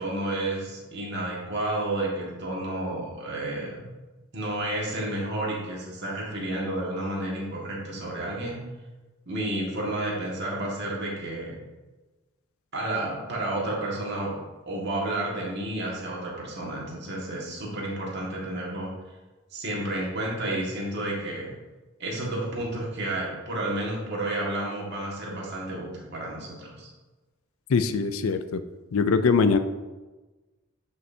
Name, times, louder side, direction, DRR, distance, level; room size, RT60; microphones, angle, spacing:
voice 1, 0.0-3.9 4.3-8.6 9.3-11.6 12.7-14.4 14.7-18.9 19.5-21.5 22.0-26.9, right 1 dB, 50° right, -3 dB, 1.8 m, -31 dB
voice 2, 27.7-28.6 28.9-29.6, left 5 dB, 75° left, 11 dB, 0.4 m, -22 dB
9.4 x 5.4 x 2.8 m, 1.2 s
head